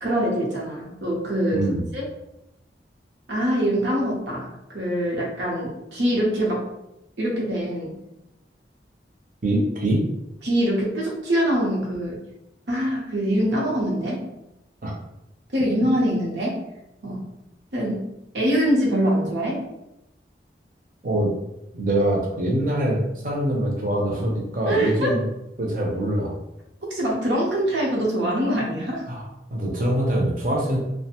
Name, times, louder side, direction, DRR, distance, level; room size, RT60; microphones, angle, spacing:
voice 1, 0.0-2.0 3.3-6.6 7.2-7.9 10.4-12.2 12.7-14.2 15.5-16.6 17.0-17.2 17.7-18.1 18.3-19.6 24.7-25.1 26.9-29.0, equal, 85° right, -3 dB, 0.8 m, -24 dB
voice 2, 1.5-1.9 9.4-10.0 14.8-14.9 21.0-21.3 21.7-25.2 25.6-26.3 29.1-29.2 29.5-30.9, right 1 dB, 50° right, -1 dB, 0.6 m, -23 dB
2.5 x 2.1 x 2.8 m, 0.88 s
head